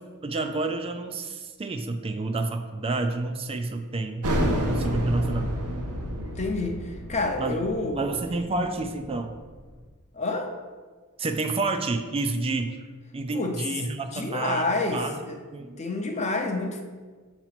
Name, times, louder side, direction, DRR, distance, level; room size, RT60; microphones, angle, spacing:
voice 1, 0.2-4.3 4.5-5.5 7.4-7.6 7.9-9.3 11.2-12.8 13.1-15.2 15.5-15.8, right 3 dB, 25° right, 6 dB, 0.4 m, -29 dB
sound 1, 4.2-9.5, equal, 85° right, 1.0 m, -29 dB
voice 2, 6.2-8.1 10.1-10.5 13.3-13.8 14.1-15.4 15.8-16.8, left 3 dB, 30° left, 3 dB, 0.7 m, -29 dB
6.6 x 3.0 x 5.8 m, 1.5 s
head